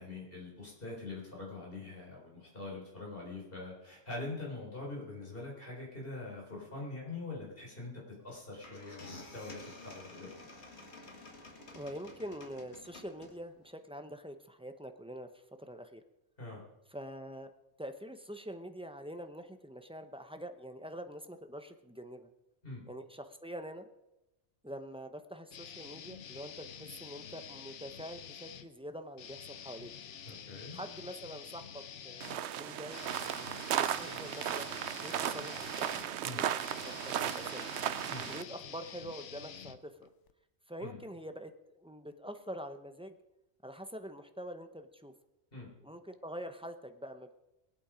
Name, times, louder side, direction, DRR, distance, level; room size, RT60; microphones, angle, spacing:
voice 1, 0.0-10.3 16.4-16.6 22.6-22.8 30.2-30.8 36.2-36.4 38.1-38.3 40.8-41.0 45.5-45.7, left 2 dB, 55° left, -3 dB, 4.6 m, -43 dB
sound 1, 8.3-8.4 8.6-13.6, left 2 dB, 70° left, 2.2 m, -51 dB
voice 2, 11.7-15.3 15.6-16.0 16.9-17.5 17.8-22.3 22.9-23.9 24.6-29.9 30.7-33.1 33.7-34.7 35.0-37.7 38.3-40.1 40.7-41.5 41.8-43.2 43.6-45.1 45.8-47.3, equal, 5° right, 7 dB, 0.6 m, -45 dB
sound 2, 25.5-28.7 29.1-40.3, left 8 dB, 90° left, 1.1 m, -48 dB
sound 3, 32.2-38.4, right 10 dB, 75° right, 0.9 m, -35 dB
21.5 x 8.5 x 5.0 m, 0.93 s
omnidirectional pair, 1.2 m